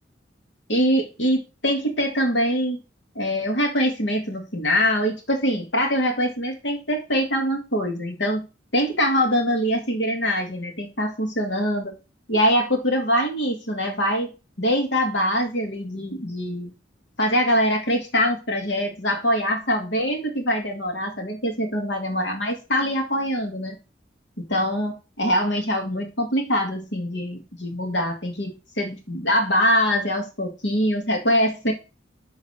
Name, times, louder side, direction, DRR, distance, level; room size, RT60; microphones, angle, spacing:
voice 1, 0.7-2.8 3.1-8.5 8.7-11.9 12.3-14.3 14.6-16.7 17.2-23.8 24.4-31.7, equal, 70° left, 3 dB, 2.4 m, -23 dB
11.5 x 4.0 x 4.4 m, 0.30 s
head